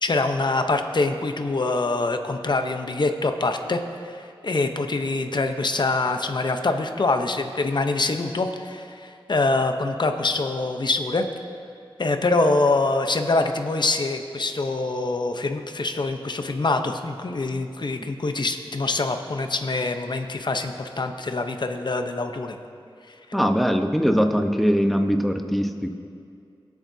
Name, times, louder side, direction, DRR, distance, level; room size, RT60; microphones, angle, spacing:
voice 1, 0.0-11.3 12.0-22.5, left 3 dB, 50° left, 6 dB, 0.8 m, -25 dB
voice 2, 23.3-25.9, equal, ahead, 5 dB, 0.9 m, -21 dB
23.5 x 8.4 x 2.8 m, 2.4 s
wide cardioid pair, 60°, 10 cm